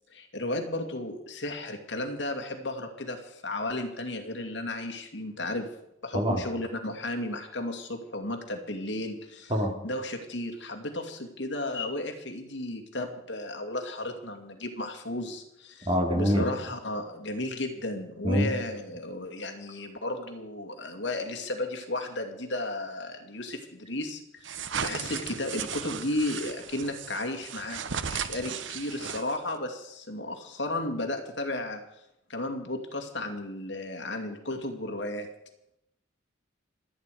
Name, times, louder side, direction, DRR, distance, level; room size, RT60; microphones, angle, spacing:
voice 1, 0.1-5.7 6.0-9.5 9.8-15.9 16.1-24.5 24.8-31.8 32.3-35.3, left 2 dB, 65° left, 4 dB, 2.4 m, -34 dB
voice 2, 15.9-16.5 18.2-18.5, equal, 25° right, 3 dB, 2.6 m, -24 dB
sound 1, 24.4-29.6, right 7 dB, 75° right, 0.8 m, -36 dB
28.0 x 9.3 x 5.0 m, 0.83 s
head